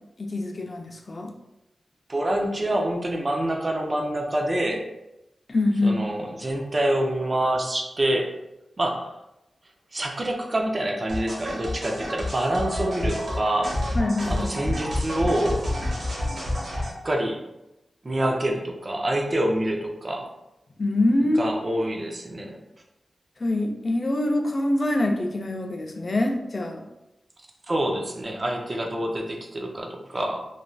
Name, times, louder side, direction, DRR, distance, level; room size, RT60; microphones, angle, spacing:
voice 1, 0.2-1.3 5.5-6.0 13.9-14.7 20.8-21.6 23.4-26.8, left 1 dB, 40° left, 3 dB, 0.4 m, -25 dB
voice 2, 2.1-4.9 5.8-8.3 8.8-9.2 9.9-13.8 14.3-15.6 17.0-17.4 18.0-20.3 21.4-22.6 27.7-30.5, right 1 dB, 35° right, 2 dB, 0.5 m, -26 dB
sound 1, 11.1-16.9, left 1 dB, 70° right, 1.0 m, -29 dB
3.1 x 2.5 x 2.2 m, 0.91 s
wide cardioid pair, 80°, 0 cm